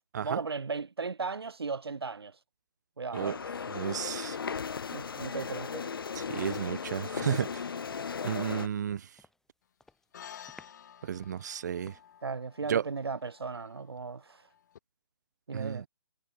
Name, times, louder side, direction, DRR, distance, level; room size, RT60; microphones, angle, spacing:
voice 1, 0.2-2.4 3.0-3.4 4.9-6.0 12.2-14.5 15.5-15.8, right 4 dB, 75° right, 1.0 m, -36 dB
sound 1, 3.1-8.7, left 6 dB, 60° left, 1.4 m, -36 dB
voice 2, 3.7-4.4 6.2-7.7 8.2-9.1 11.0-12.0 12.7-12.9 15.5-15.8, right 9 dB, 45° right, 0.4 m, -33 dB
sound 2, 8.5-9.5 9.8-10.1 10.5-12.3, left 2 dB, 5° left, 4.2 m, -59 dB
sound 3, 10.1-14.8, left 9 dB, 45° left, 2.1 m, -52 dB
figure-of-eight pair, 140°, 13 cm